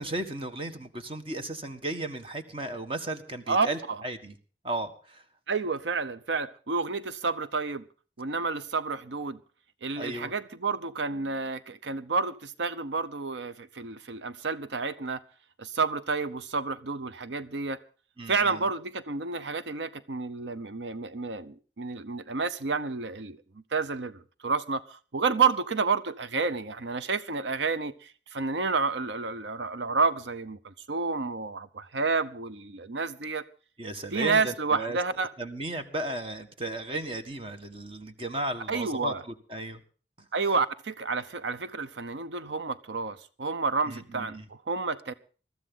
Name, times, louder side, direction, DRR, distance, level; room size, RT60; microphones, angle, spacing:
voice 1, 0.0-4.3 4.6-5.2 10.0-10.3 18.2-18.7 33.8-35.0 35.4-39.8 43.9-44.4, right 2 dB, 30° right, 1.6 m, -35 dB
voice 2, 3.5-4.0 5.5-7.8 8.2-9.4 9.8-15.2 15.6-17.8 18.3-23.4 23.7-33.4 34.1-35.3 38.7-39.2 40.3-45.1, right 4 dB, 85° right, 0.8 m, -30 dB
21.5 x 14.0 x 3.8 m
head